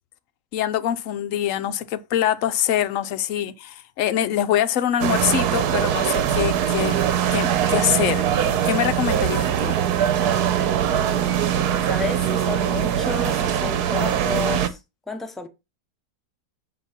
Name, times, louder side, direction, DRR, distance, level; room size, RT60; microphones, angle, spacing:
voice 1, 0.5-7.0 7.3-9.8, left 11 dB, 70° left, 0.8 m, -24 dB
sound 1, 5.0-14.7, right 9 dB, 80° right, 1.3 m, -22 dB
voice 2, 10.9-11.4 11.9-14.8 15.1-15.5, left 4 dB, ahead, 0.6 m, -31 dB
8.0 x 3.0 x 5.7 m
omnidirectional pair, 1.7 m